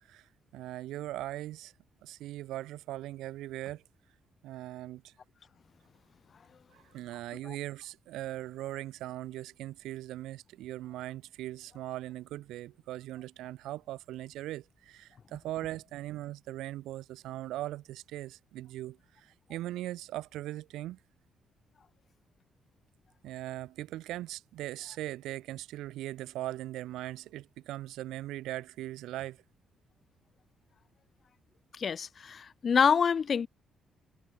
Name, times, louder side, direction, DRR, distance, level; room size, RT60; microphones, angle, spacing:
voice 1, 0.0-1.7 2.0-3.8 4.4-5.1 6.7-21.0 23.2-29.4, right 15 dB, 90° right, 1.0 m, -40 dB
voice 2, 31.8-33.5, left 6 dB, 45° left, 0.4 m, -26 dB
cardioid pair, 90°, 0 cm